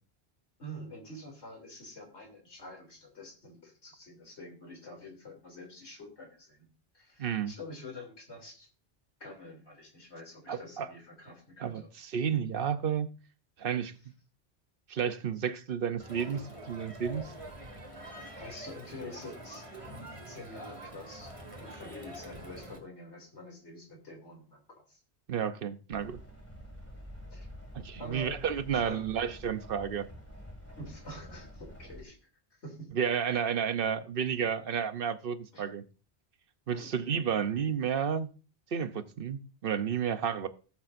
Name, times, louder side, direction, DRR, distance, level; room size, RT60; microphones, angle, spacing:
voice 1, 0.6-6.7 6.9-8.7 9.2-11.9 18.4-19.6 20.3-21.3 21.6-25.0 27.3-27.5 28.0-28.4 28.7-29.1 30.8-32.2 32.5-32.9 35.5-35.7 36.7-36.9, left 1 dB, 85° left, 3.3 m, -47 dB
voice 2, 7.2-7.5 10.5-10.9 11.6-13.1 13.6-13.9 14.9-17.3 25.3-26.2 27.7-30.1 33.0-35.8 36.7-38.3 38.7-40.5, right 7 dB, 60° right, 0.9 m, -31 dB
Crowd, 16.0-22.8, right 1 dB, 30° right, 1.8 m, -45 dB
sound 1, 25.9-32.0, equal, 15° left, 2.0 m, -48 dB
17.5 x 7.2 x 2.6 m
omnidirectional pair, 1.1 m